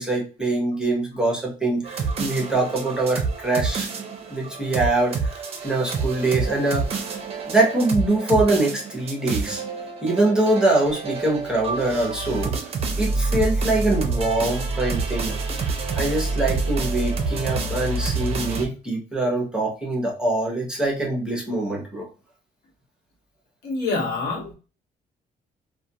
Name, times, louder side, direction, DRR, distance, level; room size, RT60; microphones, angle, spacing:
voice 1, 0.0-3.9 4.3-7.1 7.4-9.6 10.0-12.6 13.0-15.3 15.9-22.1, right 2 dB, 5° right, -3 dB, 0.8 m, -23 dB
sound 1, 1.8-18.7, right 4 dB, 35° right, 0.5 m, -27 dB
voice 2, 23.6-24.5, left 3 dB, 85° left, -1 dB, 1.0 m, -26 dB
2.4 x 2.2 x 2.8 m, 0.34 s
cardioid pair, 145°, 17 cm